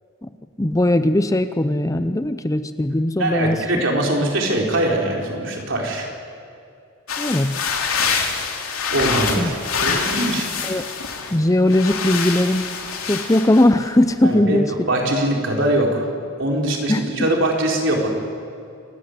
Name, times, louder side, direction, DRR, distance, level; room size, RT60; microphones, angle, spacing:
voice 1, 0.6-3.6 7.2-7.6 9.4-9.6 9.9-10.0 10.6-10.9 11.3-12.7 13.0-14.7 16.9-17.1, left 1 dB, 15° left, 10 dB, 0.6 m, -19 dB
voice 2, 3.2-6.1 8.9-9.5 9.8-10.5 14.2-16.1 16.4-18.1, right 1 dB, 60° right, 0 dB, 4.7 m, -22 dB
fabric movement suit, 7.1-11.4 11.7-13.9, left 5 dB, 85° left, 3.1 m, -25 dB
28.0 x 16.0 x 9.8 m, 2.4 s
head